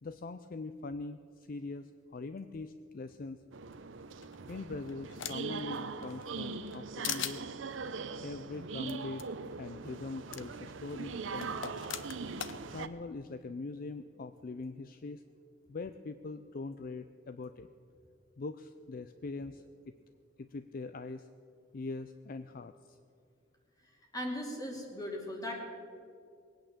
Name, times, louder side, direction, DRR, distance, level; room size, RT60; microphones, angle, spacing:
voice 1, 0.0-3.4 4.5-7.5 8.2-9.3 9.6-11.8 12.7-15.2 15.7-17.7 18.4-19.6 20.4-21.3 21.7-23.0, left 3 dB, 50° left, 11 dB, 0.5 m, -42 dB
sound 1, 3.5-12.9, right 4 dB, 80° right, 0.7 m, -41 dB
sound 2, 4.2-5.6 6.0-6.8 7.0-7.4 8.9-9.0 9.2-9.3 10.3-10.4 11.4-12.6, left 10 dB, 80° left, 0.7 m, -39 dB
voice 2, 24.1-25.5, left 1 dB, 20° left, 0 dB, 2.8 m, -38 dB
20.5 x 8.9 x 7.4 m, 2.3 s
head